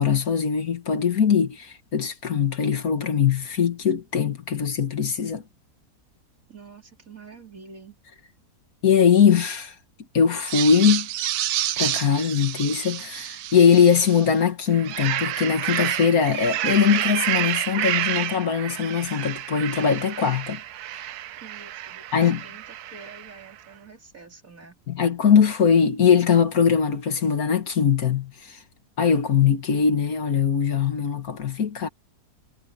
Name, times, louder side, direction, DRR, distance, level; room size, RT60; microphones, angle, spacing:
voice 1, 0.0-5.4 8.8-9.8 10.1-11.1 11.8-20.6 22.1-22.4 24.9-28.6 29.0-31.9, left 7 dB, 60° left, 1.9 m, -21 dB
voice 2, 6.5-8.0 21.4-24.8, right 4 dB, 55° right, 4.4 m, -47 dB
sound 1, 10.4-14.3 14.7-23.4, right 13 dB, 75° right, 1.2 m, -29 dB
omnidirectional pair, 1.7 m